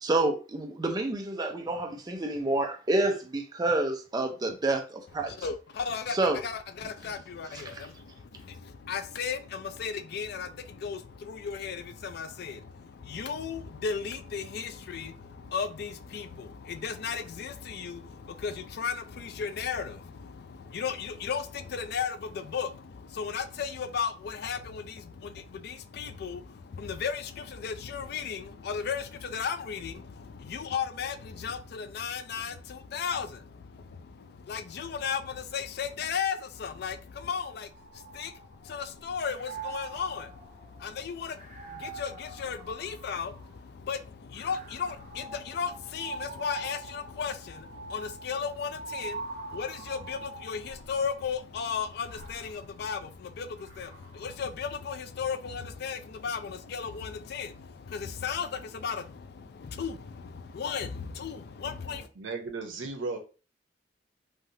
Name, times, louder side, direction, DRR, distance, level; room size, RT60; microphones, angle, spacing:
voice 1, 0.0-5.4 6.1-6.4 7.7-7.8, right 2 dB, 20° right, 0.5 m, -28 dB
voice 2, 5.2-62.1, left 6 dB, 55° left, 0.3 m, -35 dB
sound 1, 37.7-38.9 39.2-43.6 44.3-51.0 51.8-54.4, right 4 dB, 40° right, 1.1 m, -44 dB
voice 3, 62.2-63.2, right 3 dB, 90° right, 0.7 m, -35 dB
3.2 x 2.4 x 2.7 m
head